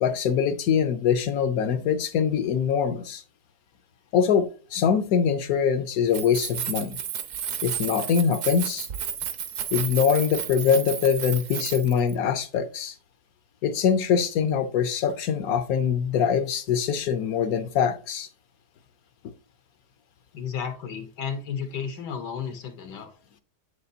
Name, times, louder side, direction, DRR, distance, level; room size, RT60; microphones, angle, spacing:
voice 1, 0.0-3.2 4.1-7.0 7.6-8.9 9.7-12.9 13.6-18.3, left 7 dB, 70° left, 1.0 m, -23 dB
Keys jangling, 6.0-12.2, right 9 dB, 60° right, 1.0 m, -32 dB
voice 2, 20.3-23.1, left 7 dB, 90° left, 1.7 m, -33 dB
7.4 x 6.7 x 2.7 m
omnidirectional pair, 1.8 m